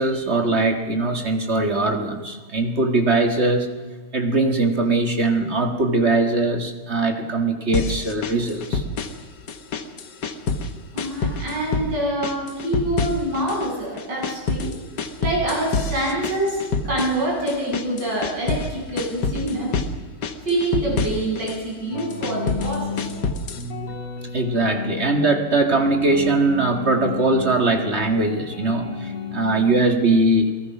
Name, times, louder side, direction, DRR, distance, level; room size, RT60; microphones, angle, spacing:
voice 1, 0.0-3.7 4.1-8.8 23.8-23.9 24.3-30.5, right 2 dB, 30° right, 5 dB, 1.8 m, -21 dB
sound 1, 7.7-9.2 9.5-10.7 11.0-11.9 12.2-13.7 14.0-18.7 19.0-19.9 20.2-21.6 22.0-23.7, left 4 dB, 55° left, 1.8 m, -27 dB
voice 2, 10.9-14.7 15.2-19.8 20.4-23.0, right 1 dB, 50° right, -3 dB, 8.4 m, -26 dB
sound 2, 21.9-29.8, left 4 dB, 90° left, 4.2 m, -33 dB
28.5 x 18.5 x 6.0 m, 1.4 s
omnidirectional pair, 2.4 m